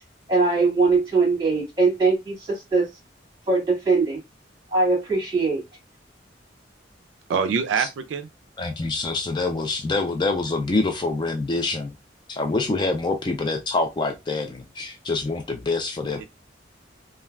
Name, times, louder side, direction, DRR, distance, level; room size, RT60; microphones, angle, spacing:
voice 1, 0.3-2.9 3.5-4.2 4.7-5.6, right 3 dB, 25° right, 1.7 m, -21 dB
voice 2, 7.3-8.3 16.2-16.3, right 6 dB, 85° right, 0.3 m, -24 dB
voice 3, 8.6-11.9 12.3-16.2, left 3 dB, 25° left, 0.3 m, -26 dB
3.3 x 2.2 x 2.3 m
head